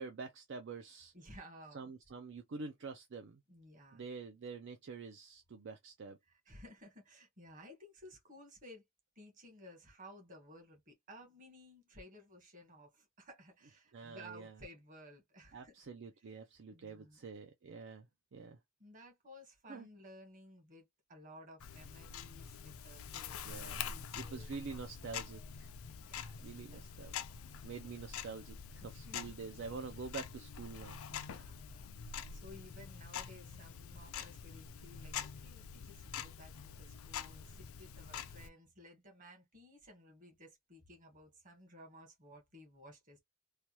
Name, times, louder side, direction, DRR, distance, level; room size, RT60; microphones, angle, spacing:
voice 1, 0.0-1.1 1.7-3.4 3.9-6.2 13.9-14.5 15.5-18.6 19.7-19.9 23.4-23.9 24.1-25.7 26.4-27.1 27.6-31.0 31.2-31.5, right 4 dB, 60° right, 0.5 m, -47 dB
voice 2, 1.1-1.9 3.5-4.0 6.3-8.8 9.1-15.9 16.7-17.2 18.8-24.8 25.7-27.1 28.8-29.2 31.1-32.0 32.3-43.2, equal, 40° right, 1.3 m, -56 dB
Tick-tock, 21.6-38.5, left 7 dB, 80° left, 0.5 m, -46 dB
3.3 x 2.3 x 2.9 m
head